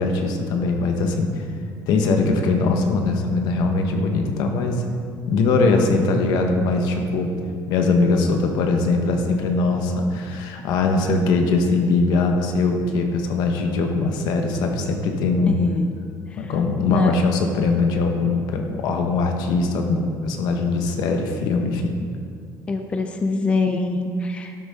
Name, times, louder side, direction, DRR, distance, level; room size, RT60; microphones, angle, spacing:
voice 1, 0.0-1.4 1.9-4.8 5.3-7.3 7.7-15.6 16.3-21.9, left 3 dB, 75° left, 4 dB, 1.4 m, -21 dB
voice 2, 15.5-15.9 16.3-16.5 16.9-17.1 22.7-24.6, left 3 dB, 15° left, 5 dB, 0.5 m, -24 dB
12.5 x 10.5 x 3.7 m, 2.2 s
cardioid pair, 180°, 7 cm